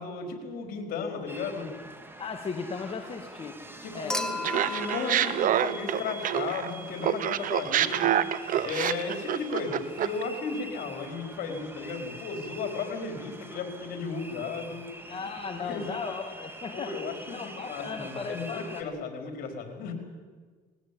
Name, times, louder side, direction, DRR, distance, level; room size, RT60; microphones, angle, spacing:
voice 1, 0.0-1.7 3.6-16.0 16.7-19.9, left 4 dB, 65° left, 5 dB, 4.8 m, -35 dB
sound 1, 1.3-18.8, right 2 dB, 15° right, 2.7 m, -45 dB
voice 2, 2.2-3.6 3.9-4.2 15.1-16.9 17.3-18.9, left 5 dB, 35° left, 3 dB, 2.0 m, -36 dB
Human group actions / Chink clink / Liquid, 4.1-6.5 8.0-8.1, left 2 dB, 5° left, 2.1 m, -35 dB
Laughter, 4.4-6.7 7.0-10.2, right 11 dB, 60° right, 1.0 m, -27 dB
19.5 x 19.0 x 8.8 m, 1.5 s
cardioid pair, 95°, 16 cm